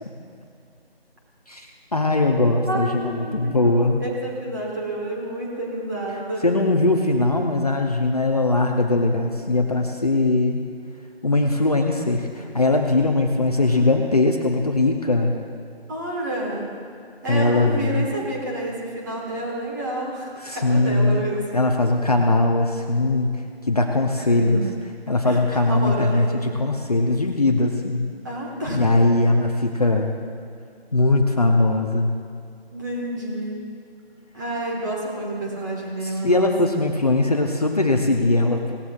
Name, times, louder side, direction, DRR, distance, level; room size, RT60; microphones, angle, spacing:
voice 1, 1.5-4.0 6.4-10.6 11.2-15.3 17.3-18.1 20.4-21.2 21.5-23.3 23.7-24.6 25.1-28.1 28.7-30.1 30.9-32.1 36.0-38.8, left 2 dB, 40° left, 2 dB, 0.8 m, -20 dB
voice 2, 2.7-6.5 13.7-14.0 15.9-16.8 17.2-21.5 24.2-24.7 25.2-26.4 28.2-28.8 32.7-33.6 34.3-36.5, right 1 dB, 20° right, -3 dB, 1.7 m, -29 dB
18.0 x 14.0 x 2.5 m, 2.4 s
figure-of-eight pair, 165°, 31 cm